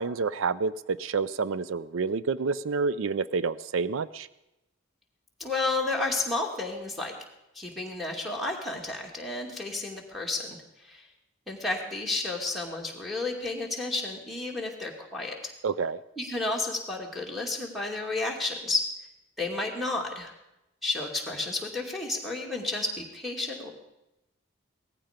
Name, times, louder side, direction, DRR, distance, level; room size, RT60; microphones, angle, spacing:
voice 1, 0.0-4.3 15.6-16.0, right 4 dB, 75° right, 17 dB, 0.4 m, -28 dB
voice 2, 5.4-7.1 7.5-11.1 11.5-15.5 16.2-18.9 19.4-20.3 20.8-23.7, left 2 dB, ahead, -2 dB, 2.3 m, -31 dB
18.0 x 14.5 x 5.1 m, 0.90 s
head